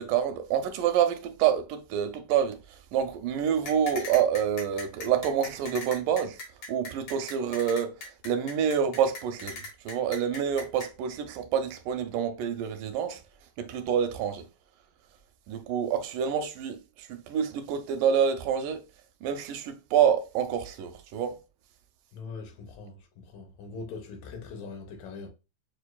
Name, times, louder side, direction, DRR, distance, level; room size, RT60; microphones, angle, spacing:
voice 1, 0.0-6.4 6.7-7.9 8.2-9.6 9.9-13.2 13.6-14.5 15.5-18.8 19.2-21.4, right 8 dB, 80° right, 2.1 m, -27 dB
sound 1, 3.7-10.9, left 3 dB, 60° left, 1.8 m, -39 dB
voice 2, 22.1-25.3, left 4 dB, 85° left, 2.6 m, -41 dB
6.9 x 2.5 x 2.2 m
omnidirectional pair, 3.8 m